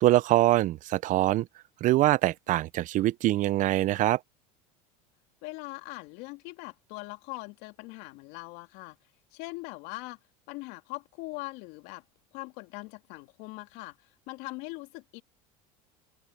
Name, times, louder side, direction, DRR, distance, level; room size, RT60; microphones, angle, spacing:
voice 1, 0.0-1.5 1.8-4.2, right 15 dB, 45° right, 0.6 m, -24 dB
voice 2, 5.4-9.0 9.3-10.2 10.5-12.0 12.3-15.2, left 24 dB, 65° left, 2.9 m, -41 dB
open air
supercardioid pair, 100°, 18 cm